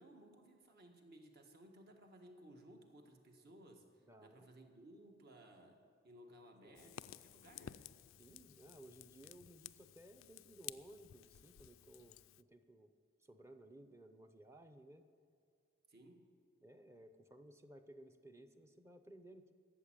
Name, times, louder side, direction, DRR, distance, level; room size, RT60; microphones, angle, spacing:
voice 1, 0.0-7.8 15.9-16.3, right 1 dB, 50° right, 3 dB, 1.6 m, -60 dB
voice 2, 4.1-4.5 6.6-6.9 8.2-12.9 13.2-15.1 16.6-19.5, right 1 dB, 15° right, 8 dB, 0.7 m, -59 dB
Fire, 6.7-12.4, left 12 dB, 75° left, 0.3 m, -54 dB
13.5 x 7.4 x 8.8 m, 2.3 s
head